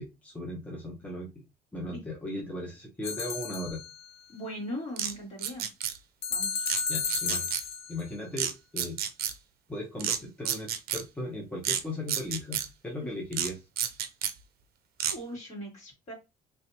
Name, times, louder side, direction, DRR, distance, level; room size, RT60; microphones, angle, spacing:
voice 1, 0.0-1.4 1.7-3.8 6.9-7.5 7.9-9.0 9.7-13.6, left 1 dB, 10° left, -1 dB, 0.8 m, -37 dB
sound 1, 3.0-4.1 6.2-8.0, left 6 dB, 70° left, 0.6 m, -33 dB
voice 2, 4.3-5.7 6.3-6.7 15.1-16.1, equal, 45° left, -3 dB, 2.3 m, -39 dB
sound 2, 5.0-5.1 5.4-6.0 6.7-6.8 7.1-7.6 8.4-8.5 8.8-9.3 10.0-10.2 10.5-11.0 11.6-11.8 12.1-12.7 13.3-13.5 13.8-14.3 15.0-15.1, right 9 dB, 65° right, 0.6 m, -30 dB
3.3 x 2.8 x 2.8 m, 0.25 s
cardioid pair, 110°, 17 cm